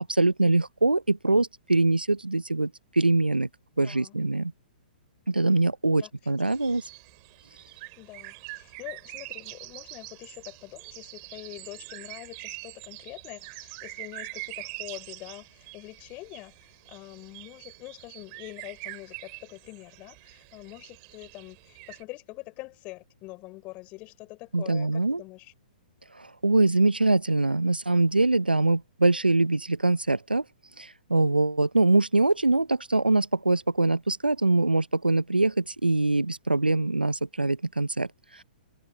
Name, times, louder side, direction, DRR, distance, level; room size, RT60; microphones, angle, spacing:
voice 1, 0.1-3.5 3.8-4.5 5.3-6.8 24.5-25.2 26.2-30.4 30.8-38.1, right 2 dB, 90° right, 0.7 m, -23 dB
voice 2, 3.8-4.2 6.0-6.3 8.0-25.5, left 22 dB, 30° left, 4.2 m, -44 dB
sound 1, 6.4-22.0, right 40 dB or more, 35° right, 4.1 m, -44 dB
figure-of-eight pair, 120°, 5 cm